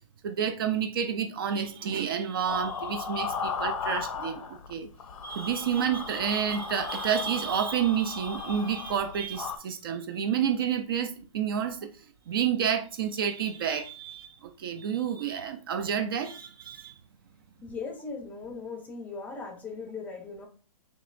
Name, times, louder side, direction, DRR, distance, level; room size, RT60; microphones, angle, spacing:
voice 1, 0.2-4.4 4.7-4.9 5.2-11.9 12.3-17.0, right 8 dB, 40° right, 0.4 m, -29 dB
sound 1, 2.5-4.7 5.0-9.6, left 6 dB, 65° left, 0.7 m, -36 dB
voice 2, 17.6-20.5, left 4 dB, 10° left, 0.6 m, -38 dB
5.2 x 2.9 x 2.5 m
hypercardioid pair, 145°, 18 cm